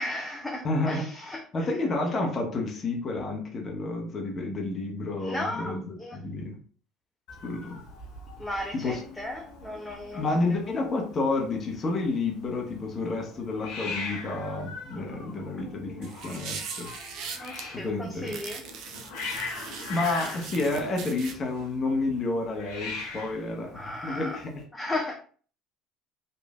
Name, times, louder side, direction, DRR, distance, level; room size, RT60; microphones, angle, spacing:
voice 1, 0.0-1.6 5.2-6.2 8.4-10.6 17.3-18.6 23.7-24.4 24.7-25.1, left 1 dB, 10° left, 0 dB, 0.5 m, -35 dB
voice 2, 0.6-6.6 7.4-7.8 8.8-9.0 10.1-16.9 17.7-18.3 19.9-24.5, left 2 dB, 35° left, 1 dB, 0.8 m, -30 dB
Hiss, 7.3-24.6, left 3 dB, 70° left, 0.9 m, -41 dB
sound 1, 16.0-17.6 18.3-21.3, right 6 dB, 60° right, 0.5 m, -40 dB
3.2 x 2.5 x 2.3 m, 0.43 s
hypercardioid pair, 65°, 0 cm